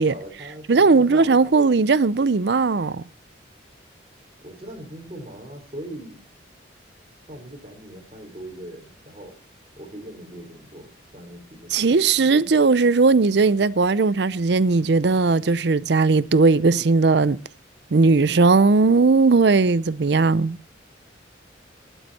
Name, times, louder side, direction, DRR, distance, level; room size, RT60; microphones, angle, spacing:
voice 1, 0.0-1.1 2.5-2.6 4.4-6.2 7.3-9.4 9.8-11.9, right 1 dB, 30° right, 3.8 m, -40 dB
voice 2, 0.7-3.0 11.7-17.4 17.9-20.6, right 4 dB, 60° right, 0.5 m, -18 dB
20.5 x 8.0 x 4.2 m
head